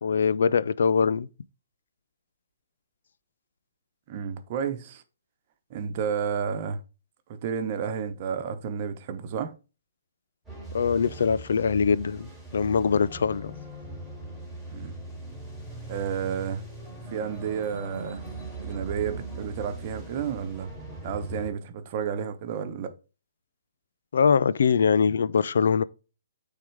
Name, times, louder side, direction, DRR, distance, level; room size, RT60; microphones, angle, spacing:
voice 1, 0.0-1.3 10.7-13.5 24.1-25.8, left 6 dB, 75° left, 0.6 m, -23 dB
voice 2, 4.1-5.0 5.7-6.8 7.3-9.5 14.7-15.0 15.9-16.6 17.1-18.2 18.6-20.7 21.0-22.9, right 7 dB, 40° right, 1.1 m, -31 dB
sound 1, 10.4-21.5, right 2 dB, 5° left, 3.4 m, -40 dB
9.1 x 3.8 x 4.6 m
hypercardioid pair, 150°, 0 cm